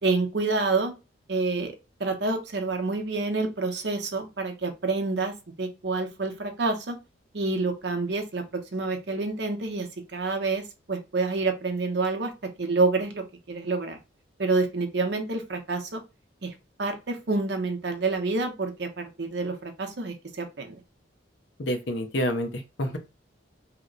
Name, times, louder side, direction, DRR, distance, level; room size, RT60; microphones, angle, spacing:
voice 1, 0.0-0.9 1.3-1.7 2.0-7.0 7.3-12.3 12.6-14.0 14.4-16.0 16.4-16.5 16.8-20.8, right 3 dB, 60° right, 5 dB, 0.7 m, -28 dB
voice 2, 21.6-23.0, equal, 65° left, 6 dB, 0.7 m, -28 dB
2.9 x 2.1 x 3.7 m, 0.28 s
head